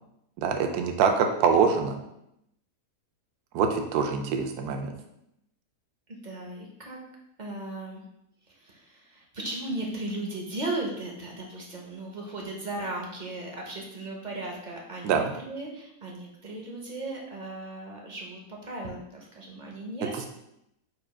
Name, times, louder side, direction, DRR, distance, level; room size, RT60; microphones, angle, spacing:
voice 1, 0.4-2.0 3.5-4.9 15.0-15.3, right 6 dB, 75° right, 4 dB, 1.1 m, -24 dB
voice 2, 6.2-7.0 7.4-8.0 8.5-20.3, right 2 dB, 50° right, -1 dB, 0.5 m, -36 dB
4.9 x 2.3 x 4.7 m, 0.80 s
omnidirectional pair, 1.8 m